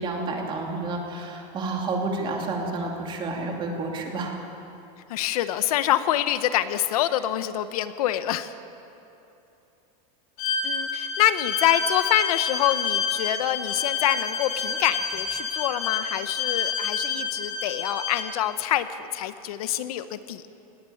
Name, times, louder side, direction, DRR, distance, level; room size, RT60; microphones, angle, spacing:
voice 1, 0.0-4.3, right 3 dB, 25° right, 1 dB, 2.7 m, -30 dB
voice 2, 5.1-8.5 10.6-20.5, left 12 dB, 75° left, 12 dB, 0.9 m, -26 dB
Bowed string instrument, 10.4-18.3, left 5 dB, 40° left, 5.1 m, -29 dB
19.5 x 15.5 x 8.6 m, 2.9 s
supercardioid pair, 160°, 19 cm